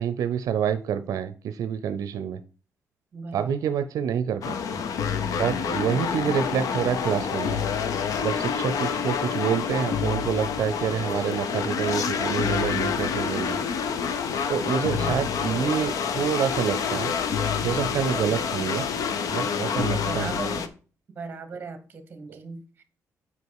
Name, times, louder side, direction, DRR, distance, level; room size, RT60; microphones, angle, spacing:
voice 1, 0.0-2.4 3.3-4.8 5.4-7.6 8.2-13.6 14.5-17.2 17.6-18.9 19.3-20.3, right 8 dB, 75° right, 11 dB, 0.5 m, -27 dB
voice 2, 3.1-3.7 15.0-15.6 19.7-20.7 21.1-22.8, right 4 dB, 30° right, 9 dB, 1.3 m, -38 dB
sound 1, 4.4-20.7, left 6 dB, 75° left, 0.8 m, -27 dB
8.3 x 4.9 x 4.7 m, 0.37 s
wide cardioid pair, 160°, 6 cm